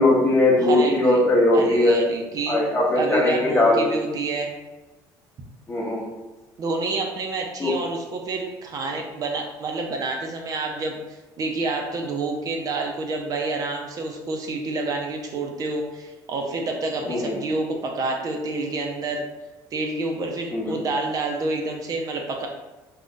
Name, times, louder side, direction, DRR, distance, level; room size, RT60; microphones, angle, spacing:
voice 1, 0.0-2.0 2.5-3.8 5.7-6.0 7.6-7.7 17.1-17.4 20.5-20.7, left 2 dB, 25° left, -3 dB, 0.8 m, -19 dB
voice 2, 0.6-1.2 1.5-2.6 2.9-4.5 6.6-11.0 11.4-19.2 19.7-22.5, right 3 dB, 45° right, 1 dB, 0.5 m, -28 dB
2.4 x 2.2 x 3.8 m, 1.1 s
cardioid pair, 105°, 9 cm